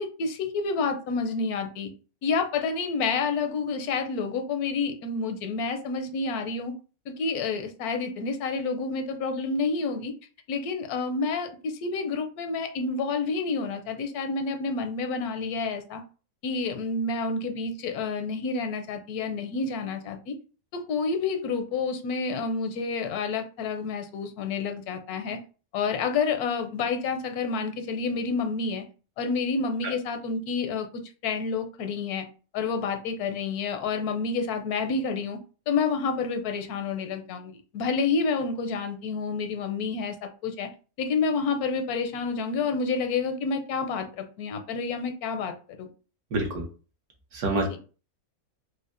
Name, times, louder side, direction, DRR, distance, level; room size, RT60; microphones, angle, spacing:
voice 1, 0.0-1.9 2.2-6.7 7.1-10.1 10.5-16.0 16.4-20.3 20.7-25.4 25.7-28.8 29.2-32.2 32.5-35.4 35.7-40.2 40.4-40.7 41.0-45.9 47.5-47.6, left 4 dB, 85° left, 7 dB, 1.1 m, -29 dB
voice 2, 46.3-46.6 47.3-47.8, right 2 dB, 85° right, 0 dB, 1.5 m, -27 dB
4.9 x 2.2 x 2.5 m, 0.36 s
omnidirectional pair, 1.5 m